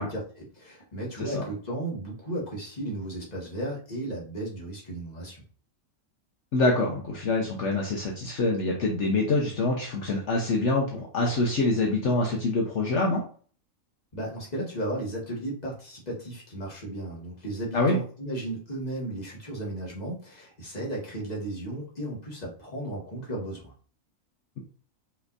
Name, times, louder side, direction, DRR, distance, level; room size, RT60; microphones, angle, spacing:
voice 1, 0.0-5.4 14.1-23.7, right 1 dB, 30° left, -3 dB, 1.7 m, -35 dB
voice 2, 6.5-13.2 17.7-18.0, left 2 dB, 65° left, -1 dB, 1.2 m, -25 dB
5.6 x 3.4 x 2.5 m, 0.42 s
omnidirectional pair, 1.4 m